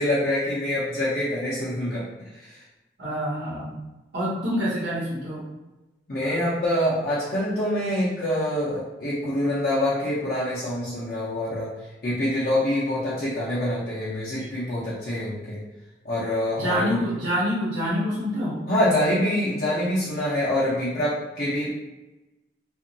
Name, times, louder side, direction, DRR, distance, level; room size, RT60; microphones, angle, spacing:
voice 1, 0.0-2.1 6.1-11.7 12.0-15.6 16.0-17.0 18.7-21.7, left 1 dB, 55° left, -9 dB, 0.6 m, -25 dB
voice 2, 3.0-3.8 4.1-5.5 14.4-14.5 16.6-18.7, equal, 90° right, -7 dB, 0.9 m, -27 dB
2.7 x 2.4 x 2.6 m, 1.1 s
head